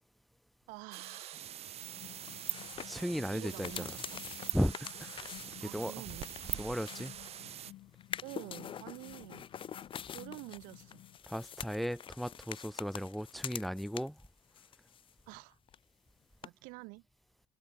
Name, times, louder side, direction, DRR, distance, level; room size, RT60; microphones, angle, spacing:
voice 1, 0.7-1.5 3.3-4.2 5.6-6.3 8.2-9.5 10.1-11.0 15.3-15.6 16.4-17.0, right 29 dB, 80° right, 2.9 m, -48 dB
sound 1, 0.9-7.7, right 10 dB, 50° right, 2.4 m, -43 dB
sound 2, 1.8-11.2, left 16 dB, 65° left, 3.2 m, -55 dB
sound 3, 2.0-7.5 8.0-14.3 14.5-15.4 15.7-15.8 16.4-16.5, left 9 dB, 40° left, 1.1 m, -46 dB
voice 2, 2.8-3.9 4.5-5.3 5.6-5.9 6.6-7.1 11.3-14.2, equal, ahead, 1.4 m, -36 dB
supercardioid pair, 95°, 14 cm